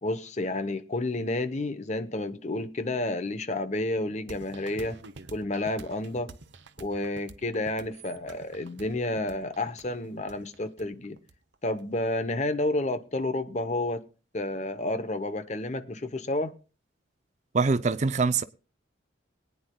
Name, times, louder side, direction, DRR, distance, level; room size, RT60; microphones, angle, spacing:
voice 1, 0.0-5.0 5.3-6.3 6.8-11.2 11.6-14.0 14.3-16.5, left 2 dB, 35° left, 0.8 m, -30 dB
sound 1, 4.3-11.8, right 3 dB, 65° right, 0.8 m, -48 dB
voice 2, 17.5-18.4, right 4 dB, 35° right, 0.5 m, -24 dB
23.0 x 9.6 x 2.2 m
head